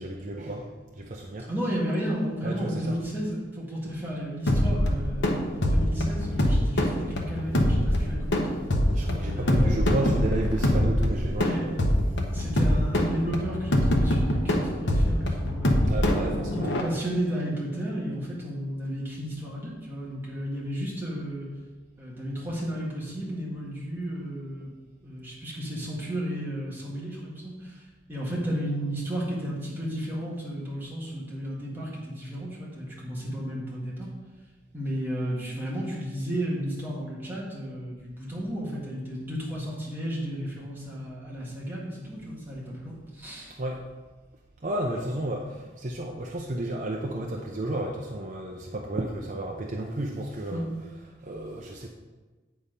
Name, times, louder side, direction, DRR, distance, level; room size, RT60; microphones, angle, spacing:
voice 1, 0.0-1.5 2.4-3.0 8.9-12.3 15.8-16.8 43.6-43.8 44.6-50.7 51.2-51.9, right 1 dB, 40° right, -1 dB, 0.6 m, -32 dB
voice 2, 1.5-8.5 9.3-9.8 11.4-11.6 12.3-15.8 16.6-21.5 22.0-24.7 25.0-34.1 34.7-43.5 50.5-50.7, equal, 10° right, -6 dB, 1.9 m, -33 dB
sound 1, 4.5-16.8, left 1 dB, 70° left, 1.0 m, -24 dB
8.8 x 4.2 x 5.2 m, 1.3 s
head